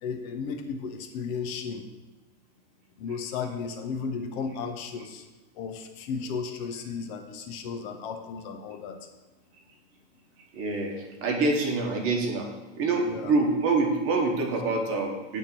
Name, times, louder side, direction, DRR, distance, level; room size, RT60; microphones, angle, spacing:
voice 1, 0.0-1.8 3.0-5.3 5.5-9.1 13.1-13.3, left 5 dB, 55° left, 6 dB, 0.9 m, -34 dB
voice 2, 10.5-12.5 12.8-15.4, right 3 dB, 35° right, 2 dB, 1.3 m, -26 dB
8.5 x 3.7 x 6.0 m, 1.1 s
supercardioid pair, 150°, 39 cm